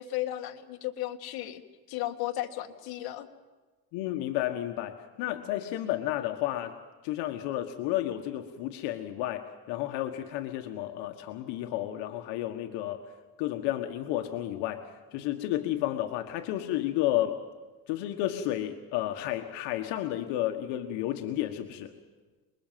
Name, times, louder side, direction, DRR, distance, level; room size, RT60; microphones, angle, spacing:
voice 1, 0.0-1.6 1.9-3.3, left 14 dB, 60° left, 5 dB, 1.9 m, -34 dB
voice 2, 3.9-6.7 7.0-13.1 13.4-17.4 17.9-21.9, left 13 dB, 75° left, 5 dB, 1.6 m, -32 dB
28.0 x 21.0 x 7.6 m, 1.3 s
cardioid pair, 135°, 41 cm